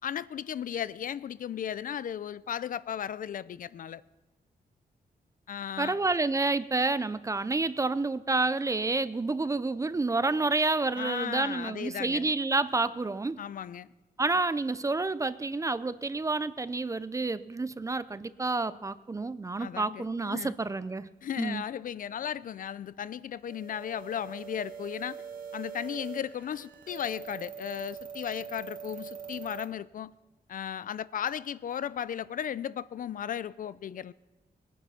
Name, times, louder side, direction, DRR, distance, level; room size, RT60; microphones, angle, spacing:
voice 1, 0.0-4.0 5.5-6.0 11.0-12.3 13.4-13.9 19.6-20.5 21.2-25.2 25.5-30.1 30.5-34.1, left 9 dB, 60° left, 0.4 m, -35 dB
voice 2, 5.8-13.4 14.2-21.1 21.4-21.6, right 3 dB, 20° right, 0.4 m, -29 dB
sound 1, 23.5-29.7, right 6 dB, 60° right, 1.5 m, -43 dB
21.0 x 10.0 x 5.6 m
wide cardioid pair, 140°, 16 cm